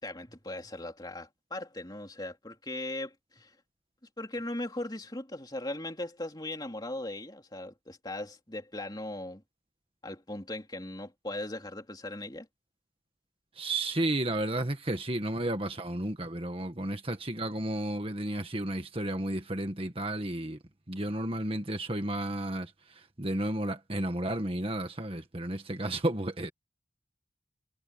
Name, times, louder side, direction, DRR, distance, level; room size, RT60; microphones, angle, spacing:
voice 1, 0.0-3.5 4.2-9.4 10.0-12.5, left 1 dB, 20° left, 3.1 m, -38 dB
voice 2, 13.5-20.6 20.9-26.5, right 1 dB, 30° right, 1.7 m, -32 dB
head